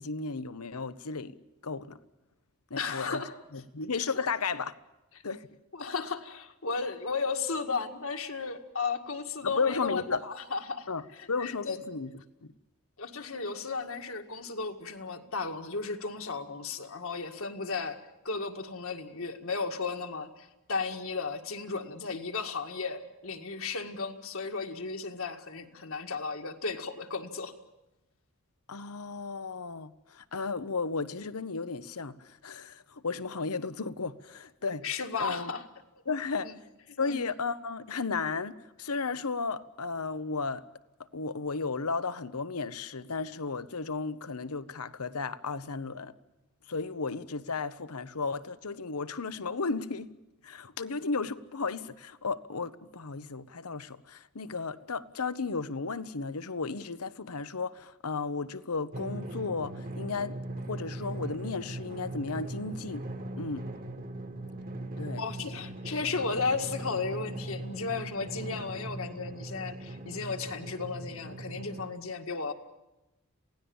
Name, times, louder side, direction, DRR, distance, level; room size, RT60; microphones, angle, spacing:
voice 1, 0.0-1.4 1.6-2.0 2.7-3.2 3.5-4.7 5.2-5.5 9.4-10.2 10.9-12.1 12.4-12.5 28.7-34.8 35.2-35.5 36.1-36.6 37.0-40.7 41.1-46.1 46.7-50.1 50.4-60.4 60.7-63.0 63.4-63.7 65.0-65.2, left 4 dB, 80° left, 1.0 m, -34 dB
voice 2, 2.8-3.3 5.7-10.9 11.2-11.8 13.0-18.0 18.2-27.5 34.8-35.6 36.4-36.5 37.0-37.2 65.2-72.5, left 4 dB, 65° left, 2.0 m, -34 dB
Drum, 58.9-71.9, right 1 dB, 40° right, 1.6 m, -40 dB
28.0 x 17.5 x 7.2 m
head